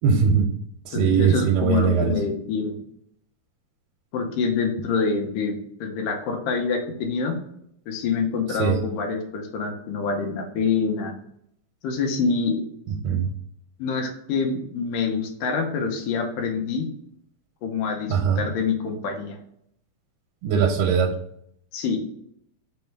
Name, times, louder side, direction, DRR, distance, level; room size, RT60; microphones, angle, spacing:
voice 1, 0.0-0.5 0.9-2.2 8.5-8.8 12.9-13.3 18.1-18.5 20.4-21.1, right 7 dB, 85° right, 2 dB, 2.1 m, -21 dB
voice 2, 0.9-2.8 4.1-7.4 7.9-11.1 11.8-12.6 13.8-16.9 17.6-19.4 21.7-22.0, left 5 dB, 80° left, 2 dB, 2.3 m, -26 dB
5.5 x 2.1 x 4.4 m, 0.71 s
omnidirectional pair, 3.8 m